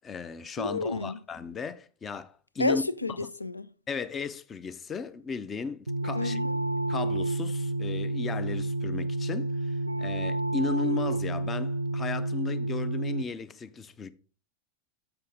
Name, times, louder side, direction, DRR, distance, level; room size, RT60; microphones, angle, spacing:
voice 1, 0.0-2.8 3.9-6.4 6.9-14.1, left 5 dB, 20° left, 0.5 m, -35 dB
voice 2, 0.6-1.2 2.6-3.7 6.1-6.6, left 3 dB, 80° left, 0.4 m, -30 dB
sound 1, 5.9-13.2, right 2 dB, 80° right, 0.3 m, -30 dB
6.9 x 6.7 x 3.6 m
figure-of-eight pair, 90°, 0 cm